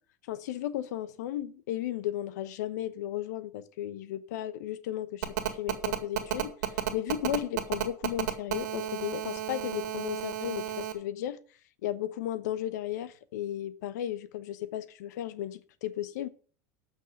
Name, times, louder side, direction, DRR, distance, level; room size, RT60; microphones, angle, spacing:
voice 1, 0.3-6.5 6.9-11.4 11.8-16.3, left 12 dB, 80° left, 0.9 m, -35 dB
Telephone, 5.2-10.9, right 12 dB, 85° right, 1.8 m, -32 dB
8.3 x 6.3 x 7.5 m
supercardioid pair, 105°, 9 cm